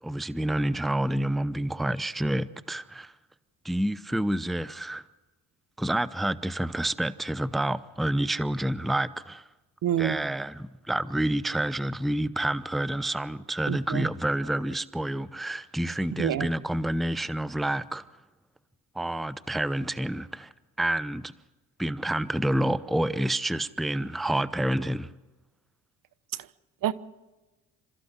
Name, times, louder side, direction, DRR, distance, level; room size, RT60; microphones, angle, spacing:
voice 1, 0.0-3.1 3.6-5.0 5.8-9.4 10.0-18.0 18.9-20.5 20.8-21.3 21.8-25.1, right 1 dB, ahead, 0.7 m, -28 dB
voice 2, 9.8-10.2 13.7-14.1 16.1-16.5 26.8-26.9, right 11 dB, 60° right, 1.0 m, -27 dB
28.5 x 13.5 x 8.1 m
supercardioid pair, 70°, 38 cm